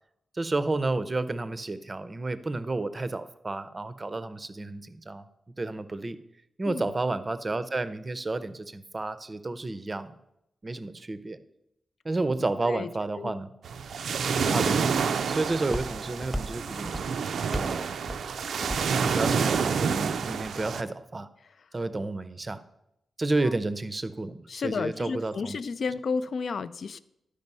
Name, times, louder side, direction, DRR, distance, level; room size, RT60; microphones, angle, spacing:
voice 1, 0.3-5.2 5.6-6.2 6.6-10.1 10.6-11.4 12.0-13.5 14.4-16.9 17.5-17.9 19.0-21.3 21.7-22.6 23.2-25.6, right 2 dB, 25° right, 13 dB, 0.5 m, -31 dB
sound 1, 13.6-20.8, right 6 dB, 85° right, 0.4 m, -28 dB
Walk footsteps, 14.3-20.5, equal, ahead, 0.7 m, -39 dB
voice 2, 24.5-27.0, left 5 dB, 60° left, 15 dB, 0.4 m, -32 dB
12.0 x 5.1 x 5.4 m, 0.83 s
wide cardioid pair, 125°, 0 cm